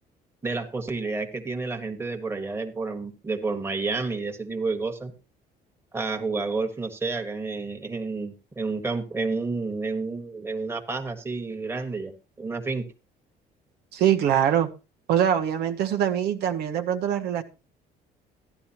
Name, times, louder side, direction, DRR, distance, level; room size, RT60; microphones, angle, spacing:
voice 1, 0.4-5.1 5.9-12.9, right 3 dB, 15° right, 4 dB, 1.5 m, -30 dB
voice 2, 13.9-14.7 15.1-17.4, right 10 dB, 75° right, 5 dB, 0.9 m, -23 dB
14.5 x 11.0 x 2.9 m, 0.29 s
cardioid pair, 110°, 17 cm